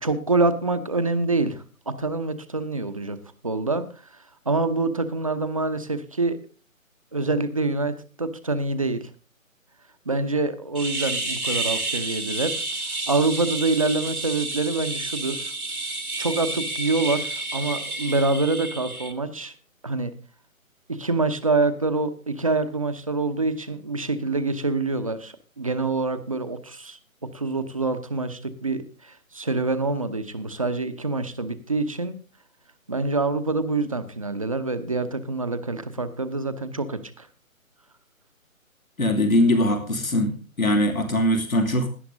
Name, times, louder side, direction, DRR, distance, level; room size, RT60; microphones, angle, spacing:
voice 1, 0.0-3.2 3.4-6.4 7.1-9.1 10.0-12.6 13.1-15.5 16.2-19.5 19.8-20.1 20.9-27.0 27.3-32.2 32.9-37.3, right 3 dB, 25° right, 10 dB, 0.8 m, -26 dB
sound 1, 10.7-19.1, right 2 dB, 85° right, 2.1 m, -30 dB
voice 2, 39.0-40.3 40.6-41.9, left 1 dB, 75° left, 3 dB, 2.8 m, -21 dB
17.0 x 11.0 x 3.8 m, 0.36 s
figure-of-eight pair, 150°, 42 cm